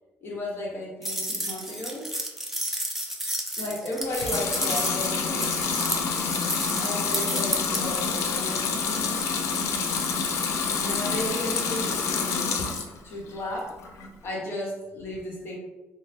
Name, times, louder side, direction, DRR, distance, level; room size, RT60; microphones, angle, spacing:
voice 1, 0.2-2.1 3.6-5.5 6.8-9.2 10.8-12.6 13.0-13.8 14.2-15.6, left 1 dB, 55° left, -3 dB, 1.0 m, -34 dB
sound 1, 1.0-7.8, right 1 dB, 5° right, 0.4 m, -31 dB
Water tap faucet / Sink (filling or washing) / Liquid, 4.0-13.0 13.4-14.1, left 5 dB, 85° left, 0.4 m, -27 dB
2.9 x 2.2 x 3.3 m, 1.1 s
cardioid pair, 155°, 5 cm